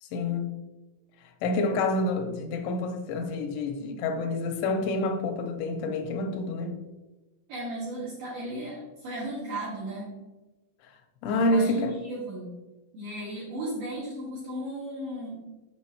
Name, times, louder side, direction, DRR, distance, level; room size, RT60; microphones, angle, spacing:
voice 1, 0.0-0.6 1.2-6.8 10.8-11.9, left 2 dB, 85° left, 3.0 m, -28 dB
voice 2, 7.5-10.2 11.3-12.5 12.9-15.4, right 1 dB, 60° right, 2.4 m, -35 dB
7.6 x 5.9 x 2.9 m
omnidirectional pair, 5.6 m